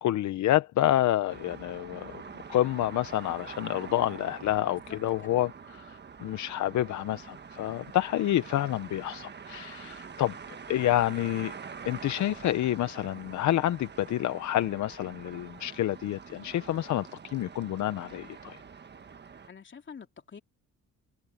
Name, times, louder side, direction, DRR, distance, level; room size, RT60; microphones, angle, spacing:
voice 1, 0.0-2.2 2.5-10.3 10.7-11.5 11.8-18.6, left 13 dB, 70° left, 0.9 m, -28 dB
sound 1, 1.3-19.5, right 6 dB, 35° right, 1.5 m, -45 dB
voice 2, 4.6-5.0 5.2-5.3 19.5-20.4, left 6 dB, 40° left, 3.1 m, -47 dB
cardioid pair, 90°, 30 cm